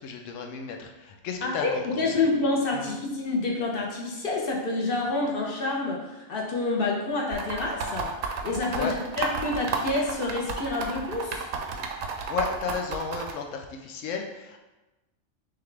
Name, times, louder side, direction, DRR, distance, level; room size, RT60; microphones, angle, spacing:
voice 1, 0.0-1.8 2.2-2.3 8.7-8.9 12.3-14.6, left 5 dB, 80° left, 3 dB, 0.9 m, -33 dB
voice 2, 1.4-11.5, left 3 dB, 55° left, -2 dB, 0.8 m, -28 dB
sound 1, 7.3-13.3, right 5 dB, 80° right, 0.9 m, -32 dB
5.7 x 2.3 x 3.3 m, 1.1 s
omnidirectional pair, 1.3 m